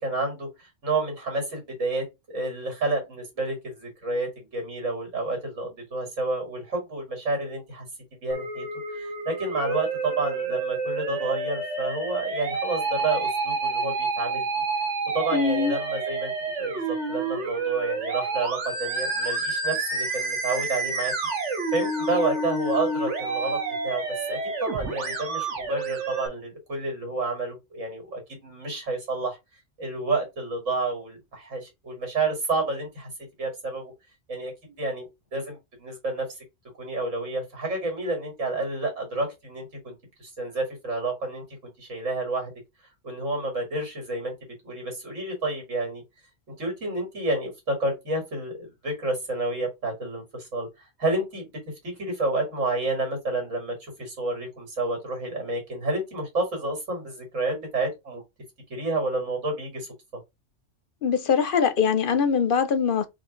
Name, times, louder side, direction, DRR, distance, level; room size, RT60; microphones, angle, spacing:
voice 1, 0.0-7.9 8.2-14.5 15.1-16.3 16.6-21.1 21.7-29.4 29.8-33.1 33.4-33.9 34.3-36.3 36.8-39.9 40.2-41.4 41.8-42.5 43.0-44.3 44.6-46.0 46.5-50.7 51.0-51.5 51.8-58.2 58.7-59.9, right 2 dB, 90° right, 2.3 m, -30 dB
Musical instrument, 8.3-26.3, right 3 dB, 70° right, 1.5 m, -29 dB
voice 2, 15.3-15.7 61.0-63.1, left 6 dB, 55° left, 0.7 m, -22 dB
4.0 x 3.0 x 3.8 m
omnidirectional pair, 1.3 m